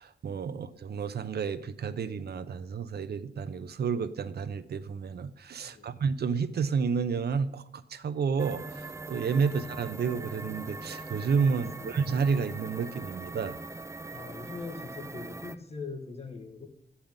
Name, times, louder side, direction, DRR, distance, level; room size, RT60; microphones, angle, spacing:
voice 1, 0.0-13.6, right 5 dB, 75° right, 0.7 m, -30 dB
sound 1, 8.4-15.6, right 2 dB, 15° right, 0.5 m, -41 dB
voice 2, 11.5-11.9 14.1-16.7, left 4 dB, 40° left, 1.8 m, -42 dB
13.5 x 5.7 x 8.9 m
wide cardioid pair, 125°, 17 cm